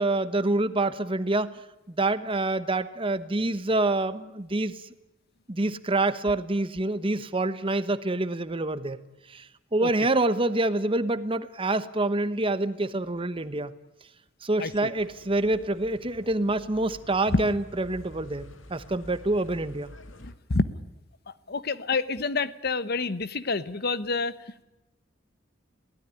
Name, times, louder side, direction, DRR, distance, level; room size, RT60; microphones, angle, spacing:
voice 1, 0.0-1.5 1.9-4.7 5.5-9.0 9.3-9.5 9.7-13.7 14.4-19.9, right 2 dB, 25° right, 13 dB, 1.0 m, -26 dB
voice 2, 14.6-14.9 17.3-17.4 20.2-20.7 21.3-24.4, left 3 dB, 55° left, 15 dB, 1.0 m, -28 dB
sound 1, 14.9-20.3, left 1 dB, 80° left, 2.2 m, -49 dB
22.5 x 17.5 x 9.9 m, 0.97 s
head